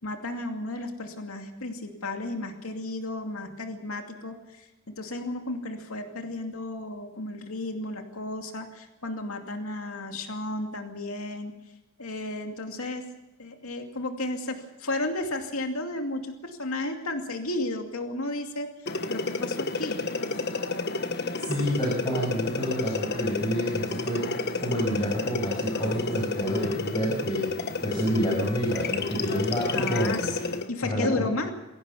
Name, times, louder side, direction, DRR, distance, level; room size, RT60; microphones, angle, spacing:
voice 1, 0.0-11.5 12.0-13.0 13.4-20.0 29.7-31.5, left 2 dB, 85° left, 4 dB, 2.5 m, -33 dB
sound 1, 18.9-30.7, left 3 dB, 50° left, 1.3 m, -31 dB
voice 2, 21.4-30.3 30.8-31.3, equal, 20° left, -3 dB, 6.4 m, -29 dB
22.5 x 17.0 x 7.0 m, 0.99 s
head